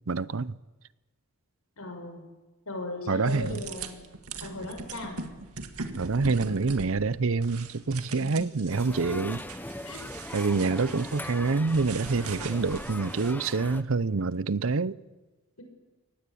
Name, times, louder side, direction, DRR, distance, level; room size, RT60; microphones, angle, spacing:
voice 1, 0.1-0.6 3.1-3.6 6.0-9.4 10.3-15.0, right 4 dB, 65° right, 0.7 m, -27 dB
voice 2, 1.8-2.2 2.7-4.0 4.4-5.2 8.1-8.2 9.8-10.0 15.6-15.7, left 2 dB, 75° left, 6.0 m, -37 dB
sound 1, 3.2-13.3, right 4 dB, 85° right, 2.0 m, -41 dB
sound 2, 8.7-13.8, left 1 dB, 10° left, 1.0 m, -40 dB
24.5 x 19.0 x 8.5 m
head